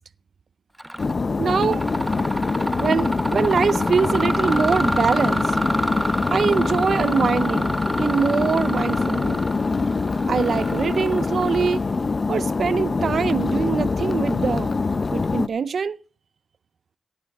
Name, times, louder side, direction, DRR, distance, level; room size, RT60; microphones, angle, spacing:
Mechanisms, 0.8-1.1 1.5-12.0, right 1 dB, 10° right, 0.6 m, -28 dB
sound 1, 1.0-15.5, left 4 dB, 45° left, 0.6 m, -24 dB
voice 1, 1.4-1.9 2.8-5.5 6.3-9.4 10.3-11.8 12.3-14.7 15.1-16.0, right 6 dB, 70° right, 0.5 m, -23 dB
16.0 x 8.6 x 3.5 m
cardioid pair, 60°, 0 cm